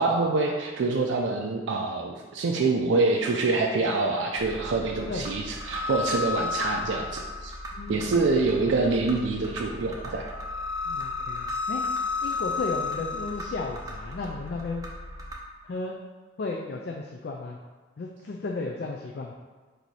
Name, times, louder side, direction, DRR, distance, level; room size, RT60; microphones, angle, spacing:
voice 1, 0.0-7.5 7.9-10.3, right 3 dB, 75° right, 0 dB, 0.4 m, -26 dB
sound 1, 4.4-15.3, left 4 dB, 20° right, 0.5 m, -34 dB
voice 2, 7.7-8.4 10.9-11.8 12.2-14.8 15.6-16.0 16.4-17.6 18.0-19.3, left 3 dB, 55° left, 0 dB, 0.4 m, -34 dB
4.6 x 2.7 x 4.0 m, 1.4 s
head